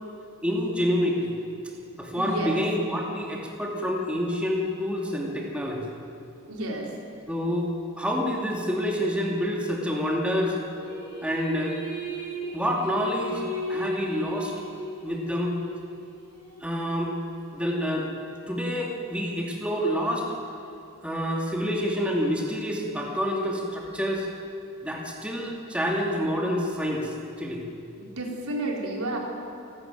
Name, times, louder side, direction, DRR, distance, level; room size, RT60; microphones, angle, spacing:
voice 1, 0.4-1.3 2.0-5.9 7.3-7.7 8.0-10.6 11.2-11.7 12.5-13.4 13.7-14.5 15.0-15.6 16.6-17.1 17.5-18.1 18.5-20.3 21.0-24.3 24.8-27.6, equal, 5° right, -1 dB, 2.7 m, -27 dB
voice 2, 2.2-2.6 6.5-6.9 28.0-29.2, right 1 dB, 75° right, 0 dB, 4.0 m, -31 dB
sound 1, 10.8-16.7, equal, 25° left, 6.6 m, -36 dB
28.5 x 13.5 x 9.2 m, 2.7 s
head